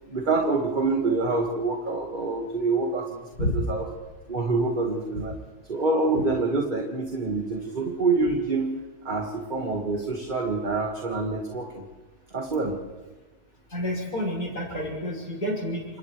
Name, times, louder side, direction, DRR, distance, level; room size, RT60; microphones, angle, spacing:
voice 1, 0.1-3.2 3.5-3.8 4.3-5.4 5.7-8.7 9.0-11.8 12.3-12.8, right 3 dB, 30° right, 1 dB, 1.7 m, -26 dB
voice 2, 13.7-15.9, equal, 60° left, -2 dB, 6.4 m, -29 dB
29.5 x 27.5 x 3.2 m, 1.2 s
omnidirectional pair, 1.9 m